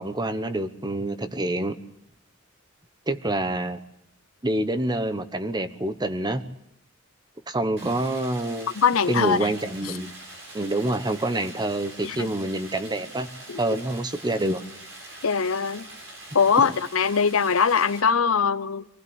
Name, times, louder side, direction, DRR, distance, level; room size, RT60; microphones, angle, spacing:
voice 1, 0.0-1.8 3.1-3.8 4.4-6.4 7.5-8.7 9.1-10.1 10.5-13.3 13.6-14.6, right 1 dB, 20° right, 1.1 m, -27 dB
Stream, 7.8-18.0, right 1 dB, 70° right, 6.7 m, -43 dB
voice 2, 8.7-9.5 9.8-9.9 12.0-12.3 13.5-13.6 15.2-15.9 16.3-18.9, left 6 dB, 80° left, 0.8 m, -22 dB
26.0 x 16.0 x 8.1 m
head